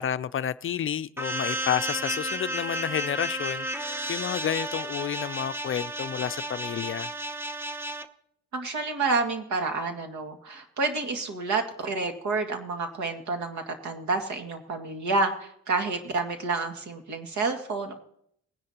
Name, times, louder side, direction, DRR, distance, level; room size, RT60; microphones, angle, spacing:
voice 1, 0.0-7.1, left 9 dB, 45° left, 0.5 m, -30 dB
sound 1, 1.2-8.1, right 1 dB, 10° right, 0.8 m, -33 dB
voice 2, 8.5-17.9, right 3 dB, 70° right, 2.1 m, -29 dB
20.0 x 10.5 x 2.9 m
cardioid pair, 90°, 30 cm